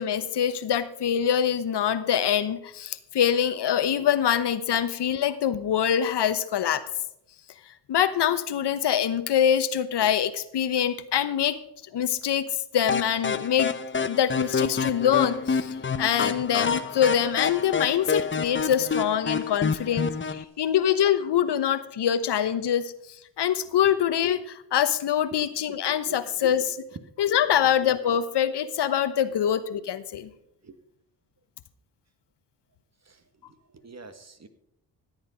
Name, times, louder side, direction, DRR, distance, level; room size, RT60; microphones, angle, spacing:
voice 1, 0.0-6.8 7.9-11.6 11.9-12.5 12.7-22.9 23.4-26.7 27.2-30.3, left 9 dB, 60° left, 12 dB, 1.0 m, -24 dB
sound 1, 12.9-20.4, left 5 dB, 25° left, 0.8 m, -28 dB
voice 2, 23.6-23.9 26.0-26.2 26.9-27.0 27.4-27.8 29.3-29.4 30.6-30.8 33.0-34.5, right 4 dB, 35° right, 9 dB, 1.5 m, -46 dB
15.0 x 8.2 x 5.1 m, 0.76 s
supercardioid pair, 55°, 47 cm